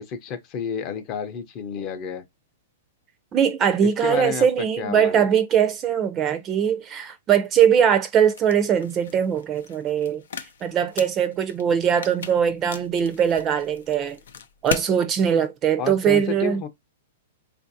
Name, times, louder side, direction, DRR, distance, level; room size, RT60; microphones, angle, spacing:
voice 1, 0.0-2.2 3.8-5.3 15.8-16.7, left 6 dB, 35° left, 0.6 m, -31 dB
voice 2, 3.3-10.2 10.6-14.2 14.6-16.6, right 8 dB, 25° right, 0.5 m, -21 dB
sound 1, 8.3-14.9, left 6 dB, 85° left, 0.6 m, -38 dB
4.0 x 2.5 x 2.6 m
hypercardioid pair, 150°, 0 cm